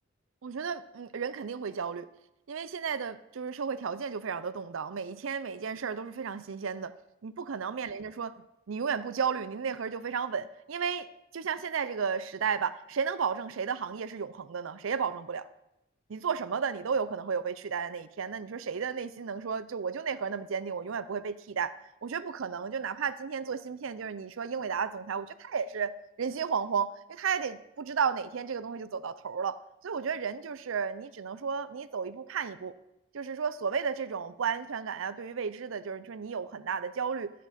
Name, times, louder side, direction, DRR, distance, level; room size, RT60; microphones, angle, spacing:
voice 1, 0.4-2.1 2.5-6.9 7.2-8.3 8.7-11.1 11.3-15.5 16.1-21.8 22.0-25.9 26.2-32.7 33.1-37.3, right 6 dB, 75° right, 14 dB, 0.5 m, -33 dB
14.0 x 7.4 x 4.2 m, 0.87 s
head